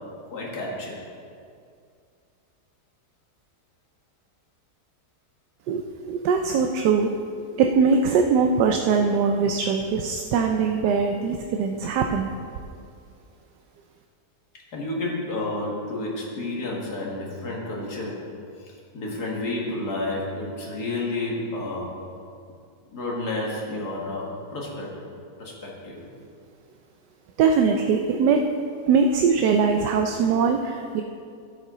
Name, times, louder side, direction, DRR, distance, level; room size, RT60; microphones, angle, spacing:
voice 1, 0.3-1.0 14.7-18.3 18.6-22.0 22.9-25.0 25.4-26.1, left 2 dB, 70° left, -3 dB, 2.3 m, -31 dB
voice 2, 5.7-7.2 7.6-12.3 27.4-28.4 28.9-31.0, right 5 dB, 90° right, 4 dB, 1.2 m, -21 dB
12.5 x 7.7 x 3.9 m, 2.3 s
omnidirectional pair, 1.8 m